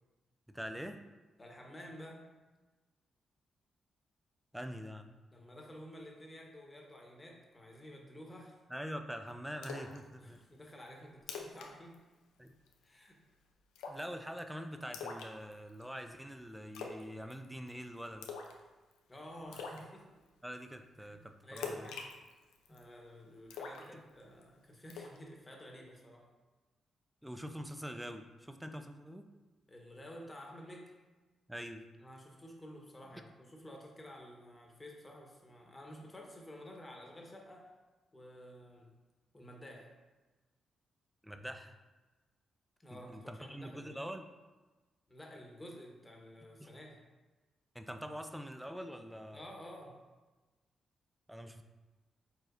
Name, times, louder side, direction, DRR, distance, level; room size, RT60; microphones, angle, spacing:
voice 1, 0.5-1.0 4.5-5.1 8.7-10.4 12.4-12.5 13.9-18.3 20.4-21.9 23.9-24.0 27.2-29.3 31.5-31.8 41.2-41.8 42.9-44.2 46.6-46.7 47.7-49.5 51.3-51.6, equal, 5° right, 6 dB, 0.5 m, -44 dB
voice 2, 1.4-2.3 5.3-8.6 10.2-12.0 12.8-13.2 19.1-20.1 21.0-22.1 22.7-26.3 29.7-31.0 32.0-37.7 38.1-38.9 39.3-39.9 42.8-44.0 45.1-47.0 49.3-50.0, equal, 25° left, 0 dB, 1.1 m, -51 dB
Splash splatter, 9.6-10.0 10.3-10.4 10.9-11.0 11.2-11.7 11.9-12.1 12.5-12.8 13.7-14.1 14.9-15.8 16.7-17.0 17.3-17.7 18.2-18.6 18.9-19.0 19.5-19.8 21.6-22.8 23.5-24.4 24.9-25.2, left 5 dB, 80° left, 0.5 m, -43 dB
4.8 x 4.1 x 2.6 m, 1.2 s
hypercardioid pair, 40°, 0 cm